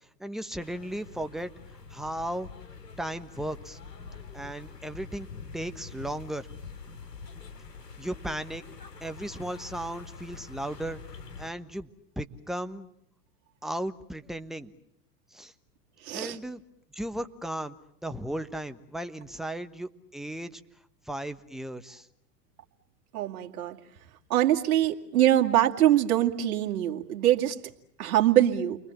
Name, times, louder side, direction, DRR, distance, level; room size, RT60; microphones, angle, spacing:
voice 1, 0.2-1.5 1.9-2.5 3.0-3.8 4.3-5.3 5.5-6.5 8.0-8.6 9.0-11.0 11.4-11.9 12.2-12.9 13.6-14.7 15.3-15.5 16.1-16.6 16.9-17.7 18.0-20.6 21.1-22.1, right 1 dB, ahead, 8 dB, 1.2 m, -35 dB
sound 1, 0.6-11.5, left 5 dB, 85° left, 2.9 m, -45 dB
voice 2, 16.0-16.4 23.1-23.8 24.3-27.6 28.0-28.8, right 12 dB, 60° right, 3 dB, 2.6 m, -23 dB
30.0 x 24.0 x 7.4 m, 0.75 s
hypercardioid pair, 100°, 48 cm